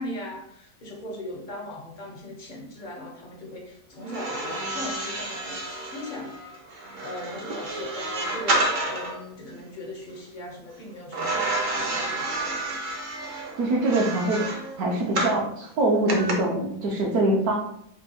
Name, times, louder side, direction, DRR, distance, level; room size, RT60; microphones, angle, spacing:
voice 1, 0.0-6.4 6.7-12.8, left 1 dB, 45° left, 0 dB, 0.6 m, -39 dB
sound 1, 4.0-9.2 11.1-15.4 16.1-16.3, right 2 dB, 50° right, 0.6 m, -30 dB
voice 2, 13.6-14.4 14.8-17.5, right 2 dB, 70° right, -2 dB, 1.1 m, -23 dB
5.2 x 2.2 x 2.7 m, 0.72 s
omnidirectional pair, 1.7 m